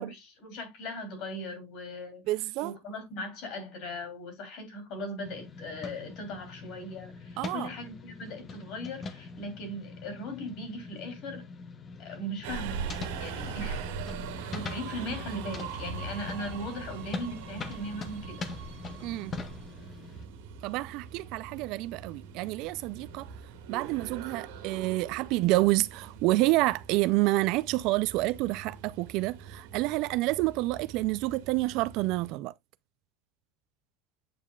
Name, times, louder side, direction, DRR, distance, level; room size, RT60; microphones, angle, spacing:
voice 1, 0.0-2.2 2.6-11.5 12.0-12.9 13.2-13.9 14.4-18.4, left 1 dB, 45° left, 3.0 m, -39 dB
voice 2, 2.3-2.7 7.4-7.7 19.0-19.3 20.6-23.3 23.7-32.5, right 19 dB, 50° right, 0.3 m, -28 dB
sound 1, 5.2-20.2, left 4 dB, 20° left, 0.8 m, -43 dB
Subway metro underground, 12.4-32.3, right 6 dB, 90° right, 1.6 m, -42 dB
8.5 x 5.3 x 2.3 m
cardioid pair, 170°, 0 cm